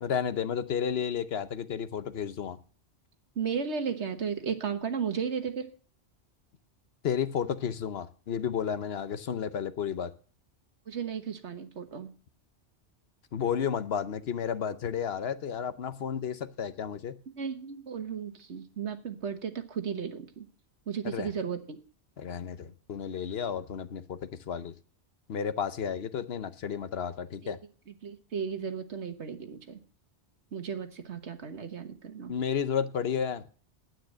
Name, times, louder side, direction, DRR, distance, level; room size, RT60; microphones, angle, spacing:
voice 1, 0.0-2.6 7.0-10.1 13.3-17.2 21.0-21.3 22.2-24.7 25.3-27.6 32.3-33.4, left 7 dB, 65° left, 13 dB, 1.0 m, -32 dB
voice 2, 3.3-5.7 10.9-12.1 17.4-20.5 20.9-21.8 27.4-27.5 27.9-29.8 30.5-32.3, right 6 dB, 80° right, 8 dB, 1.6 m, -34 dB
9.6 x 9.2 x 7.5 m, 0.41 s
omnidirectional pair, 1.1 m